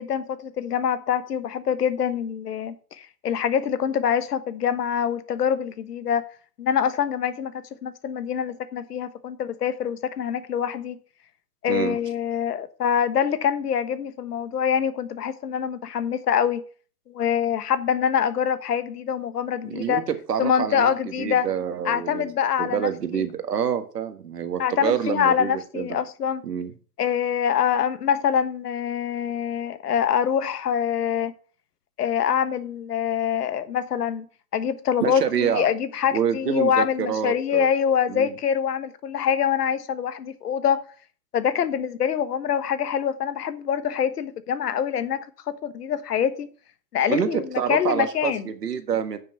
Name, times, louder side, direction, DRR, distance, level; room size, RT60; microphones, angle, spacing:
voice 1, 0.0-6.2 6.6-11.0 11.6-16.6 17.1-20.0 20.4-21.5 21.8-23.2 24.6-26.4 27.0-31.3 32.0-34.2 34.5-40.8 41.3-46.5 46.9-48.4, left 8 dB, 75° left, 1.3 m, -25 dB
voice 2, 19.6-20.0 20.3-20.9 21.2-22.3 22.6-26.0 26.4-26.7 35.0-35.7 36.1-37.7 38.1-38.3 47.1-49.2, right 8 dB, 85° right, 1.7 m, -27 dB
9.8 x 6.2 x 5.6 m
hypercardioid pair, 130°, 47 cm